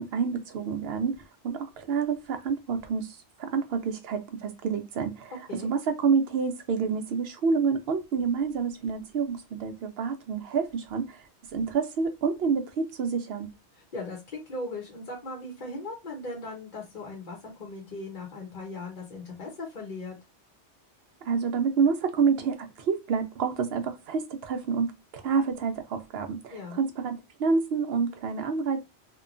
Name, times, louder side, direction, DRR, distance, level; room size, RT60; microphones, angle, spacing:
voice 1, 0.0-5.3 5.6-11.2 11.5-13.5 21.2-27.1 27.4-28.8, right 5 dB, 65° right, 0.8 m, -28 dB
voice 2, 13.9-20.2 26.5-26.8, left 2 dB, 45° left, 0.8 m, -38 dB
3.0 x 2.2 x 2.4 m
omnidirectional pair, 1.2 m